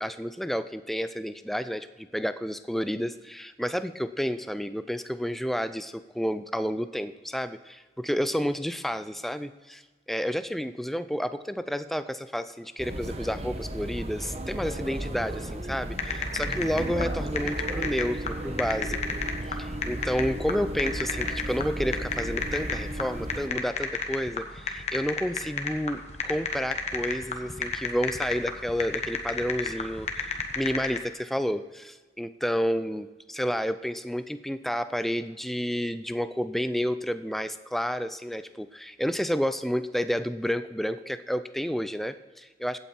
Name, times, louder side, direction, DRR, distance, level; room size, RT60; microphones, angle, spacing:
voice 1, 0.0-9.8 10.1-19.2 19.5-42.8, equal, ahead, 11 dB, 0.4 m, -30 dB
sound 1, 12.8-23.5, right 1 dB, 35° right, 1.0 m, -34 dB
sound 2, 15.9-31.0, left 5 dB, 40° left, 1.2 m, -32 dB
15.5 x 8.8 x 4.4 m, 1.3 s
head